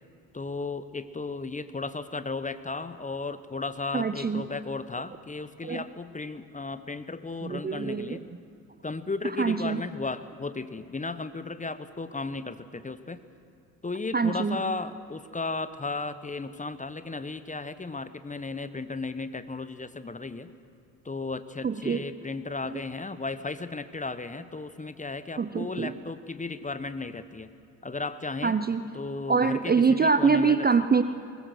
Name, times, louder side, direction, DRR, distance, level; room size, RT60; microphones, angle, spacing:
voice 1, 0.3-8.2 8.8-13.2 13.8-20.5 21.0-27.5 27.8-28.5 28.9-30.7, left 3 dB, 15° left, 12 dB, 1.0 m, -35 dB
voice 2, 3.9-4.5 5.6-5.8 7.4-8.4 9.4-9.8 14.1-14.6 21.6-22.0 22.6-22.8 25.4-26.0 28.4-28.8 29.3-31.0, right 5 dB, 20° right, 11 dB, 0.7 m, -25 dB
21.5 x 20.0 x 6.3 m, 2.7 s
figure-of-eight pair, 50°, 49 cm